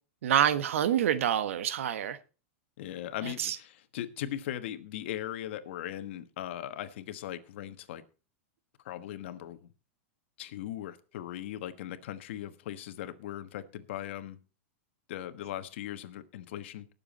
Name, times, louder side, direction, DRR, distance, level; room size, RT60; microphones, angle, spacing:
voice 1, 0.2-2.2 3.2-3.6, right 10 dB, 80° right, 1.2 m, -27 dB
voice 2, 2.8-8.0 8.8-9.7 10.4-14.4 15.1-16.9, left 12 dB, 60° left, 1.3 m, -39 dB
19.0 x 7.2 x 4.1 m
supercardioid pair, 160°, 7 cm